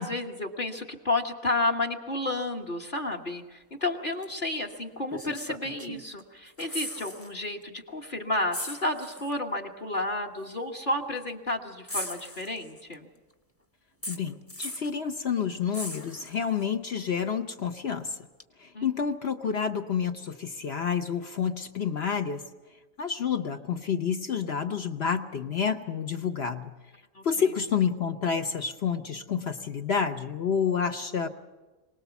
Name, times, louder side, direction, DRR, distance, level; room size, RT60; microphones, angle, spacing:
voice 1, 0.0-13.1 18.7-18.9 27.1-27.2, left 2 dB, 35° left, 4 dB, 1.5 m, -31 dB
sound 1, 4.2-4.4 5.1-6.2 6.5-7.3 7.6-7.8 8.5-9.4 10.4-10.5 11.9-12.9 14.0-15.0 15.7-16.7 18.4-18.5, left 1 dB, 10° left, 1.0 m, -38 dB
voice 2, 14.1-18.2 18.6-22.4 23.0-26.7 27.2-31.3, left 7 dB, 50° left, 7 dB, 1.0 m, -29 dB
24.5 x 19.0 x 7.1 m, 1.2 s
omnidirectional pair, 1.6 m